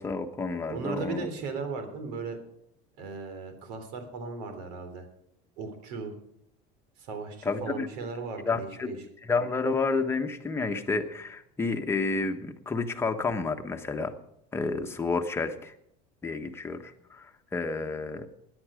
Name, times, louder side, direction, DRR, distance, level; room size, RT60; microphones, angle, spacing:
voice 1, 0.0-1.3 7.4-7.9 8.4-14.1 14.5-15.7 16.2-18.3, left 4 dB, 10° left, 5 dB, 1.1 m, -30 dB
voice 2, 0.7-2.4 3.0-5.1 5.6-6.1 7.0-9.0, right 4 dB, 85° right, 7 dB, 3.5 m, -37 dB
17.5 x 10.5 x 5.0 m, 0.73 s
cardioid pair, 155°, 20 cm